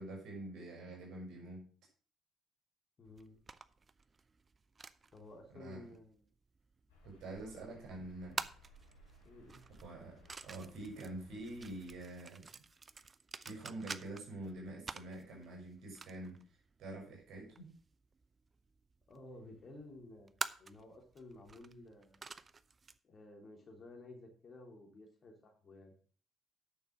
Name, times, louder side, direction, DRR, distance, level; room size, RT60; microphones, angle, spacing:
voice 1, 0.0-1.6 5.6-5.8 7.0-8.4 9.8-12.6 13.4-16.4 16.8-17.7, right 2 dB, 55° right, -1 dB, 5.8 m, -46 dB
voice 2, 3.0-3.4 5.1-6.3 7.4-7.7 9.2-9.6 19.1-22.2 23.0-25.9, left 2 dB, 40° left, 2 dB, 3.0 m, -54 dB
sound 1, 3.1-23.0, right 4 dB, 30° right, 0.6 m, -50 dB
sound 2, 6.9-12.1, equal, 75° left, 3.2 m, -62 dB
10.0 x 6.6 x 6.1 m, 0.43 s
figure-of-eight pair, 45°, 0 cm